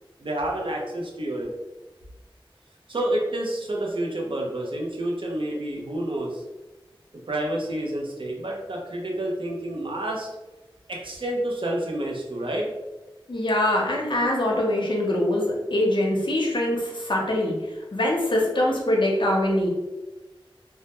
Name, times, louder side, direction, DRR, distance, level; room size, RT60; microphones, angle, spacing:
voice 1, 0.2-1.5 2.9-6.4 7.3-10.3 10.9-12.7, right 1 dB, 65° right, -1 dB, 0.5 m, -29 dB
voice 2, 13.3-17.5 17.9-19.7, left 1 dB, 60° left, -2 dB, 0.6 m, -23 dB
2.1 x 2.1 x 2.8 m, 1.1 s
wide cardioid pair, 55°, 9 cm